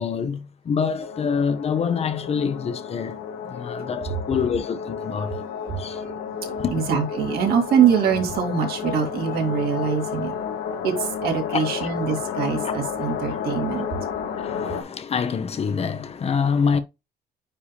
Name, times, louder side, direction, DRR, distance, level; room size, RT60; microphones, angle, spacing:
voice 1, 0.0-3.2 3.4-5.4 5.8-6.0 6.6-6.8 11.5-11.9 12.6-13.4 13.7-13.8 14.2-16.8, left 6 dB, 35° left, 0.8 m, -26 dB
sound 1, 1.0-14.8, left 6 dB, 85° left, 1.6 m, -31 dB
voice 2, 5.6-6.1 6.4-10.3 10.8-13.8, right 7 dB, 65° right, 2.7 m, -23 dB
9.8 x 3.5 x 2.8 m
cardioid pair, 110°, 17 cm